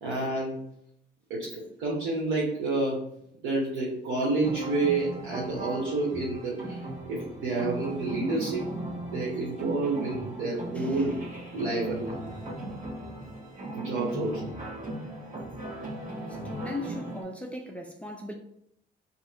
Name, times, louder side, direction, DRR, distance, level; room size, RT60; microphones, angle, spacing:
voice 1, 0.0-0.6 1.3-3.1 3.4-8.7 9.1-11.2 11.5-12.1 13.7-14.5, right 2 dB, 85° right, 0.9 m, -29 dB
sound 1, 4.4-17.2, right 1 dB, 40° right, 1.3 m, -37 dB
voice 2, 16.4-18.3, left 1 dB, 5° left, 0.5 m, -37 dB
2.8 x 2.5 x 4.3 m
cardioid pair, 90°, 20 cm